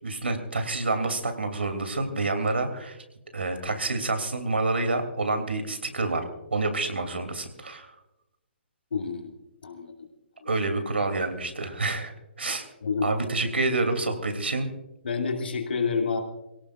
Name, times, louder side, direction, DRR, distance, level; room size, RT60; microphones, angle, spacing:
voice 1, 0.0-3.0 3.3-6.2 6.5-7.9 10.4-12.1 12.4-12.6 13.0-14.7, right 2 dB, 75° right, 7 dB, 2.8 m, -28 dB
voice 2, 8.9-9.3 9.6-10.1 10.4-10.5 12.8-13.1 15.0-16.2, left 5 dB, 65° left, 3 dB, 2.5 m, -28 dB
24.0 x 17.5 x 2.5 m, 0.94 s
figure-of-eight pair, 130°, 6 cm